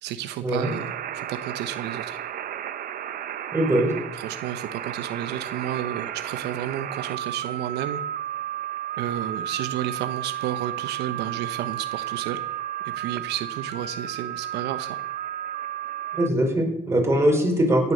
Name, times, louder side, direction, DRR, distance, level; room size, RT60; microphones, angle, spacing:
voice 1, 0.0-2.2 4.1-8.0 9.0-12.4 12.8-15.0, right 11 dB, 85° right, 10 dB, 0.9 m, -32 dB
sound 1, 0.6-16.3, right 11 dB, 60° right, 1.0 m, -33 dB
voice 2, 3.5-3.9 16.1-17.9, right 1 dB, 15° right, 1 dB, 4.6 m, -21 dB
16.5 x 9.7 x 6.7 m, 0.87 s
cardioid pair, 110°, 17 cm